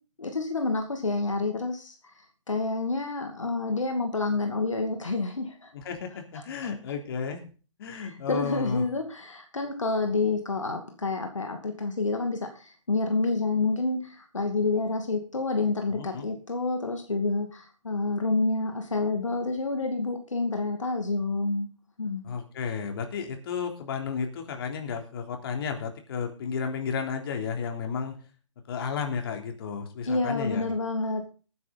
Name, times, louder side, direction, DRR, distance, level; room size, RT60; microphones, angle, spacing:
voice 1, 0.2-2.1 2.5-5.7 6.3-6.4 7.9-21.7 22.0-22.3 30.1-31.3, left 3 dB, 85° left, 4 dB, 2.4 m, -28 dB
voice 2, 5.7-7.4 7.8-8.9 15.9-16.3 22.2-28.1 28.7-30.6, left 6 dB, 50° left, 3 dB, 3.4 m, -33 dB
20.0 x 9.6 x 4.1 m, 0.38 s
figure-of-eight pair, 130°, 16 cm